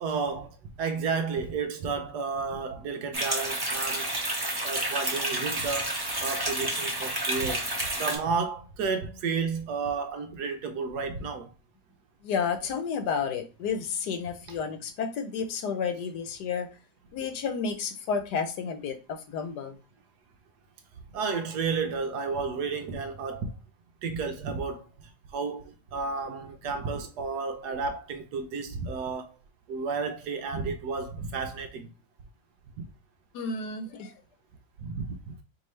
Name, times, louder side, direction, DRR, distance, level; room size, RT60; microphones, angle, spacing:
voice 1, 0.0-4.2 4.6-11.5 21.1-23.5 24.0-24.9 25.3-29.4 29.7-31.9 32.8-32.9 34.8-35.2, right 5 dB, 70° right, 1.1 m, -32 dB
sound 1, 3.1-8.2, right 1 dB, 20° right, 0.6 m, -30 dB
voice 2, 12.2-16.7 17.1-19.8 33.3-34.1, left 6 dB, 70° left, 1.2 m, -31 dB
4.6 x 2.9 x 3.1 m
omnidirectional pair, 1.9 m